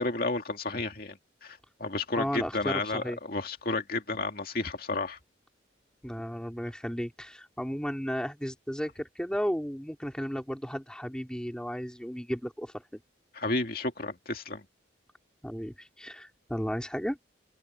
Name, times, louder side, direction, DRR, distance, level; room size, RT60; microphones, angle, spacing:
voice 1, 0.0-5.2 13.3-14.6, left 2 dB, 50° left, 2.4 m, -32 dB
voice 2, 2.2-3.2 6.0-13.0 15.4-17.2, equal, 5° left, 4.0 m, -34 dB
head